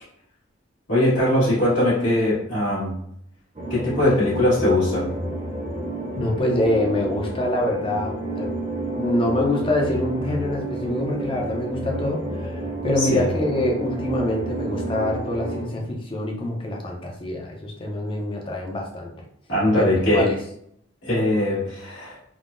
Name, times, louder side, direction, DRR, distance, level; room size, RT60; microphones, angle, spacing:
voice 1, 0.9-3.0 3.7-5.1 13.0-13.2 19.5-20.3 21.0-22.2, left 1 dB, 75° left, -12 dB, 1.4 m, -21 dB
sound 1, 3.5-15.6, right 1 dB, 30° right, 0.6 m, -30 dB
voice 2, 6.2-8.5 8.9-19.1 19.7-20.4, left 1 dB, 25° left, 1 dB, 0.5 m, -25 dB
3.5 x 2.0 x 2.5 m, 0.70 s
head